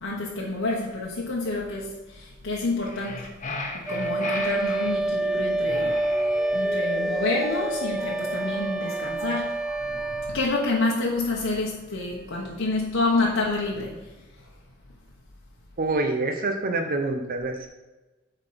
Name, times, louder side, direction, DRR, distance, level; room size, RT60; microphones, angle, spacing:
voice 1, 0.0-3.3 3.7-6.0 6.5-9.5 9.8-13.9, left 2 dB, 65° left, -3 dB, 1.2 m, -28 dB
sound 1, 2.8-5.0 5.6-6.9, left 3 dB, 40° left, 1.1 m, -36 dB
Wind instrument woodwind instrument, 3.9-10.4, right 2 dB, ahead, 0.3 m, -27 dB
Mallet percussion, 6.1-11.6 12.0-12.1, equal, 25° right, 2.7 m, -38 dB
voice 2, 15.8-17.7, right 2 dB, 45° right, 4 dB, 0.8 m, -26 dB
8.3 x 4.0 x 5.8 m, 1.1 s
head